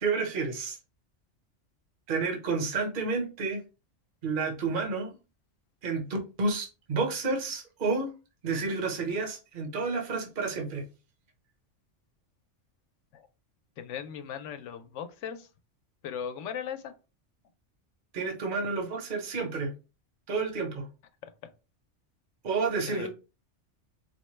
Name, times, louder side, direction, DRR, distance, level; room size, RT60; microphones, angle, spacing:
voice 1, 0.0-0.8 2.1-3.6 4.2-5.1 5.8-6.1 6.4-8.1 8.4-10.9 18.1-19.7 20.3-20.9 22.4-23.1, right 4 dB, 50° right, 1.0 m, -30 dB
voice 2, 13.8-15.5 16.0-16.9 21.2-21.3 22.9-23.1, left 8 dB, 90° left, 0.9 m, -38 dB
4.3 x 2.1 x 3.0 m
omnidirectional pair, 1.2 m